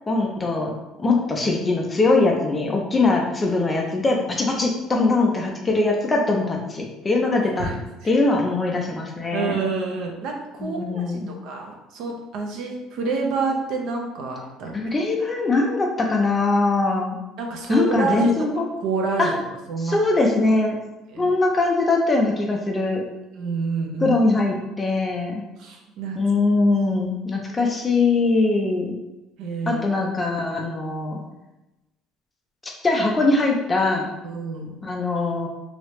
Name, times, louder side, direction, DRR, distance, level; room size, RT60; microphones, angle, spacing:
voice 1, 0.1-0.7 1.0-7.7 8.0-9.6 10.6-11.3 14.7-17.2 17.7-18.7 19.2-19.3 19.8-20.8 21.2-23.0 24.0-25.4 26.2-29.0 29.7-31.2 32.8-34.1 34.8-35.5, left 3 dB, 15° left, 0 dB, 0.4 m, -21 dB
voice 2, 7.3-7.8 9.3-14.7 17.4-18.3 18.8-19.3 19.7-20.0 21.1-21.3 23.4-24.1 25.6-26.2 27.5-27.7 29.4-29.8 34.2-34.8, right 4 dB, 55° right, 1 dB, 0.6 m, -28 dB
3.2 x 2.7 x 3.0 m, 1.0 s
cardioid pair, 180°, 0 cm